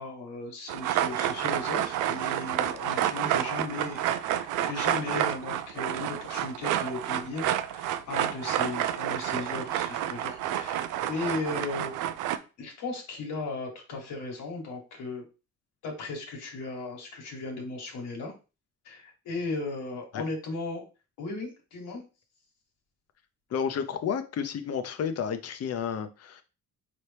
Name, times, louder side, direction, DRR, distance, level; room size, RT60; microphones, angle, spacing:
voice 1, 0.0-11.9 12.6-15.2 15.8-18.3 18.8-20.8 21.2-22.0, left 3 dB, 85° left, 0 dB, 1.4 m, -36 dB
sound 1, 0.7-12.4, right 11 dB, 90° right, 0.5 m, -29 dB
voice 2, 23.5-26.4, left 7 dB, 55° left, 9 dB, 0.6 m, -31 dB
4.2 x 3.0 x 3.3 m, 0.32 s
cardioid pair, 90°, 30 cm